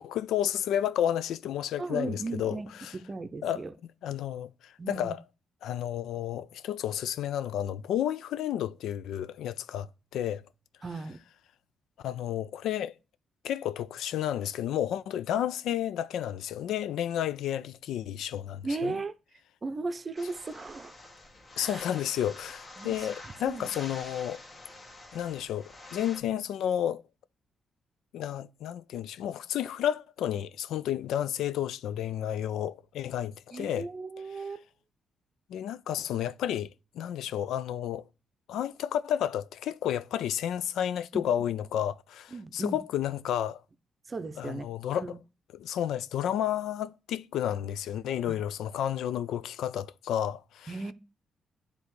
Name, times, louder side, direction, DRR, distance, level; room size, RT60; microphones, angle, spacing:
voice 1, 0.0-2.9 3.4-3.6 4.0-5.2 5.6-10.4 12.0-12.9 13.4-19.0 21.6-24.4 25.1-27.0 28.1-33.9 34.3-34.4 35.5-36.7 36.9-38.0 38.5-43.6 44.4-45.0 45.5-50.7, left 10 dB, 85° left, 0.3 m, -31 dB
voice 2, 1.8-3.7 4.8-5.1 10.8-11.2 18.6-19.1 19.6-20.9 21.6-21.8 22.8-23.0 23.5-23.7 33.5-34.6 41.1-41.2 42.3-42.8 44.1-44.7 45.0-45.2 48.2-48.3 50.7-50.9, right 3 dB, 35° right, 0.6 m, -36 dB
sound 1, 20.2-26.2, left 2 dB, 40° left, 1.3 m, -47 dB
9.5 x 3.4 x 3.1 m
cardioid pair, 80°, 0 cm